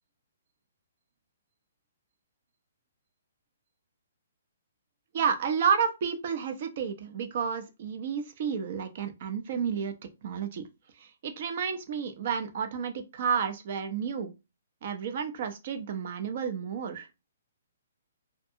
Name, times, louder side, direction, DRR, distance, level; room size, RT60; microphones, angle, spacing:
voice 1, 5.1-9.9 10.2-10.7 11.0-14.3 14.8-17.1, right 6 dB, 50° right, 0.6 m, -31 dB
2.6 x 2.2 x 2.7 m
hypercardioid pair, 150°, 0 cm